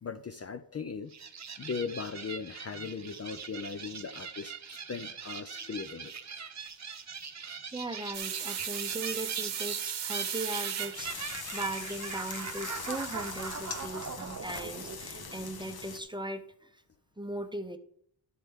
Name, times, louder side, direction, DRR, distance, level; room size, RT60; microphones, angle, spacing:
voice 1, 0.0-1.1 1.6-6.1, left 5 dB, 35° left, 10 dB, 0.5 m, -38 dB
sound 1, 1.1-15.8, right 6 dB, 35° right, 0.9 m, -41 dB
voice 2, 7.7-16.8 17.2-17.8, right 1 dB, 10° right, 7 dB, 0.7 m, -39 dB
sound 2, 8.1-13.8, right 9 dB, 65° right, 1.1 m, -38 dB
sound 3, 10.9-16.0, left 6 dB, 55° left, 1.1 m, -42 dB
11.0 x 7.7 x 3.6 m, 0.68 s
cardioid pair, 90°, 45 cm